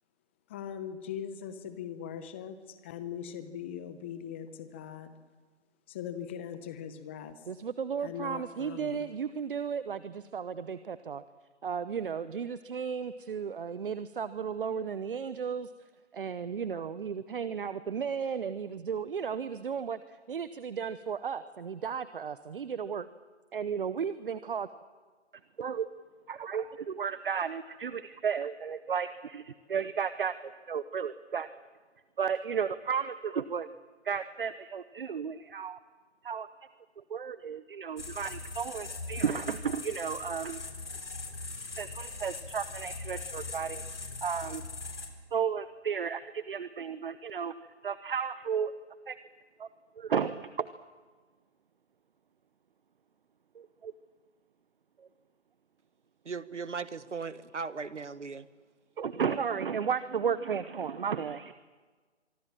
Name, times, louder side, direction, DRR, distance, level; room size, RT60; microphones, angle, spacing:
voice 1, 0.5-5.1 5.9-7.5 8.0-9.0, left 9 dB, 10° left, 12 dB, 0.7 m, -40 dB
voice 2, 7.5-11.2 11.6-15.7 16.1-23.1 23.5-24.7 25.6-26.0 26.3-31.5 32.2-33.7 34.0-35.8 36.2-36.5 37.0-40.6 41.6-43.8 44.2-44.6 45.3-47.5 47.8-48.7 49.1-49.2 49.6-49.7 50.0-50.7 53.5-53.9 55.0-55.1 59.0-61.5, right 7 dB, 50° right, 14 dB, 0.9 m, -34 dB
sound 1, 38.0-45.1, left 3 dB, 75° left, 4.4 m, -40 dB
voice 3, 56.2-58.5, right 5 dB, 80° right, 15 dB, 1.5 m, -38 dB
25.0 x 23.5 x 7.5 m, 1.4 s
figure-of-eight pair, 150°, 36 cm